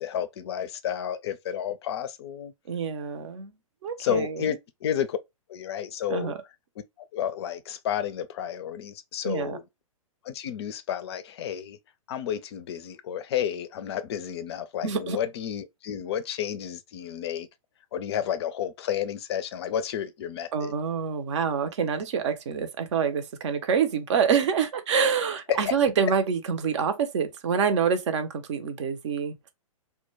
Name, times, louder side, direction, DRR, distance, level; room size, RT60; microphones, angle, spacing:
voice 1, 0.0-2.5 4.0-5.2 5.5-6.3 7.1-9.6 10.2-11.8 12.1-17.5 17.9-20.7 25.5-25.7, left 9 dB, 50° left, 0.4 m, -31 dB
voice 2, 2.7-3.5 3.8-4.5 6.1-6.4 9.2-9.6 14.8-15.2 20.5-29.5, right 6 dB, 55° right, 0.6 m, -26 dB
2.2 x 2.1 x 3.1 m
figure-of-eight pair, 115°, 18 cm